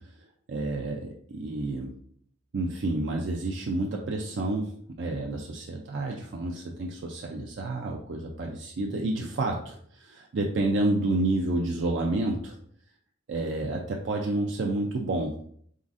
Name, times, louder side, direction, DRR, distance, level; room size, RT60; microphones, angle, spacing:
voice 1, 0.5-1.9 2.5-4.7 5.0-12.6 13.3-15.3, right 2 dB, 65° right, 0 dB, 0.4 m, -29 dB
4.0 x 3.8 x 2.5 m, 0.62 s
head